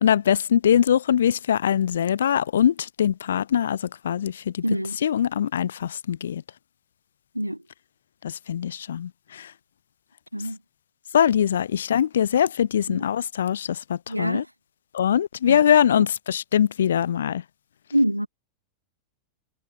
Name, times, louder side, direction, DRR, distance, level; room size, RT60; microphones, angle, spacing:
voice 1, 0.0-3.8 4.0-4.6 5.0-6.4 8.2-9.5 11.1-14.4 14.9-17.4, left 9 dB, 65° left, 0.6 m, -22 dB
voice 2, 4.6-5.0 7.3-7.6 10.3-10.6 12.9-13.0 14.1-14.5 15.5-15.6 16.0-16.1 17.9-18.3, equal, 90° right, 1.4 m, -25 dB
figure-of-eight pair, 90°, 0 cm